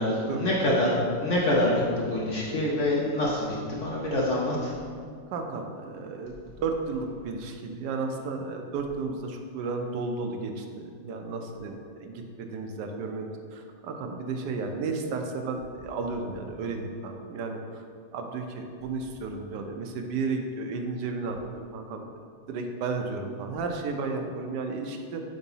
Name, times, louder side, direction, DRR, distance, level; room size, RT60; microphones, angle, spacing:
voice 1, 0.0-4.7, left 1 dB, 60° left, -4 dB, 0.9 m, -26 dB
voice 2, 5.3-17.8 18.1-22.0 22.5-25.2, right 4 dB, 75° right, 4 dB, 1.1 m, -33 dB
4.5 x 3.9 x 5.4 m, 2.1 s
omnidirectional pair, 1.9 m